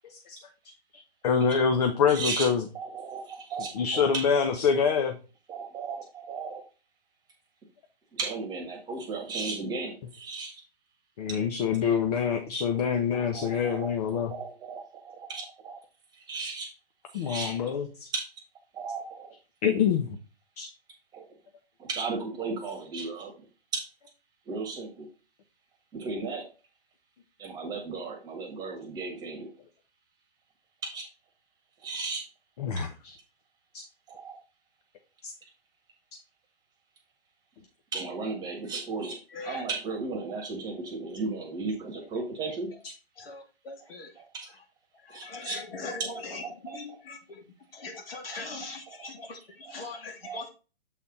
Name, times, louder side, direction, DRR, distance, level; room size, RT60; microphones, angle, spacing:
voice 1, 0.0-0.4 0.9-2.6 3.7-5.1 11.2-14.3 17.1-18.1 19.6-20.2 20.6-20.7 32.6-33.1 35.2-35.3, left 6 dB, 40° left, 5 dB, 0.9 m, -26 dB
voice 2, 2.1-2.5 2.7-4.2 5.5-6.6 8.1-10.5 12.8-15.8 16.1-16.7 17.1-17.6 18.1-18.3 18.7-19.3 21.1-21.2 21.8-23.5 23.7-23.9 24.4-25.1 25.9-26.5 27.4-29.5 30.8-31.1 31.8-32.2 34.1-34.4 37.9-39.2 39.4-42.7 44.1-44.5 45.1-45.6 45.9-47.0 48.3-49.1 49.6-49.7 50.2-50.4, right 4 dB, 15° right, 2 dB, 1.4 m, -35 dB
voice 3, 43.7-44.0 45.3-45.5 47.8-49.3 49.7-50.5, left 3 dB, 70° left, 3 dB, 2.3 m, -40 dB
7.4 x 4.2 x 4.1 m, 0.33 s
hypercardioid pair, 150°, 31 cm